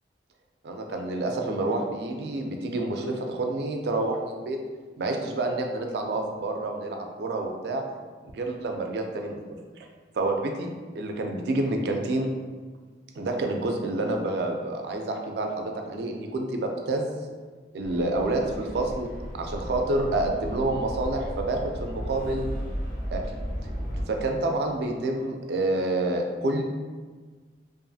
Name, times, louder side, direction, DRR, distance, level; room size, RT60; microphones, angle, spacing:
voice 1, 0.6-4.6 5.0-7.8 8.3-9.4 10.1-10.7 11.0-12.3 13.2-17.1 17.7-19.1 19.3-22.5 23.1-23.2 24.1-26.6, right 2 dB, 65° right, 3 dB, 0.3 m, -28 dB
sound 1, 17.8-24.0, equal, 50° left, 0.5 m, -34 dB
2.6 x 2.4 x 2.3 m, 1.4 s
head